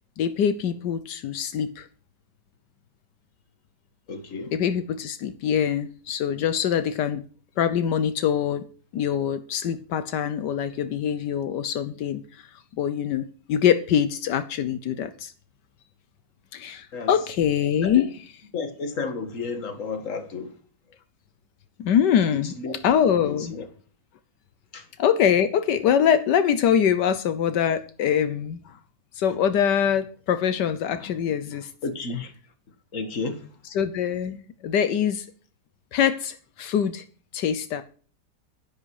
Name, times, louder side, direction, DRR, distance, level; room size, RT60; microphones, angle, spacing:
voice 1, 0.2-1.9 4.5-7.2 7.6-8.6 8.9-12.4 12.8-15.3 16.5-18.1 21.8-22.5 22.8-23.5 25.0-28.6 29.2-31.7 33.6-35.3 35.9-37.0 37.3-37.8, left 8 dB, 85° left, 1.5 m, -24 dB
voice 2, 4.1-4.5 16.9-17.1 17.8-18.1 18.5-20.5 22.6-22.8 23.2-23.6 24.7-24.8 31.8-32.3 32.9-33.4, left 4 dB, 50° left, 2.0 m, -31 dB
11.0 x 11.0 x 4.8 m
omnidirectional pair, 1.8 m